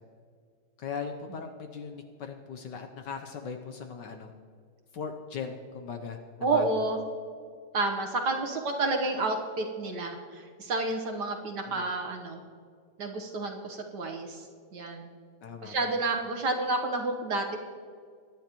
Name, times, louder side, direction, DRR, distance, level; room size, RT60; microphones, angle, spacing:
voice 1, 0.8-4.3 4.9-6.8 11.7-11.9 15.4-16.0, left 6 dB, 65° left, 5 dB, 1.2 m, -39 dB
voice 2, 6.4-7.0 7.7-12.4 13.0-15.1 15.6-17.6, right 3 dB, 55° right, 3 dB, 1.5 m, -30 dB
22.0 x 10.5 x 3.0 m, 2.1 s
omnidirectional pair, 2.4 m